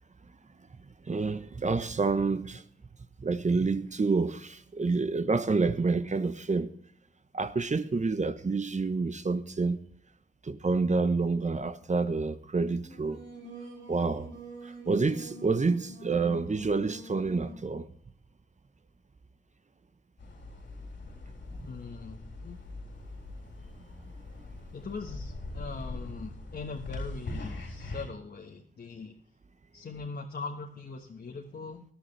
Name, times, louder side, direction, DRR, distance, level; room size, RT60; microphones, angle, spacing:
voice 1, 1.1-2.6 3.2-6.7 7.3-9.8 10.4-13.2 13.9-14.3 14.6-17.9 21.6-21.7, right 4 dB, 40° right, 1.0 m, -28 dB
Singing, 12.8-17.7, right 2 dB, 90° right, 3.5 m, -46 dB
sound 1, 20.2-28.0, left 2 dB, 85° left, 3.8 m, -41 dB
voice 2, 21.6-22.6 24.7-29.1 29.7-31.8, left 4 dB, 60° left, 1.4 m, -41 dB
17.5 x 11.0 x 3.3 m
cardioid pair, 50°, 19 cm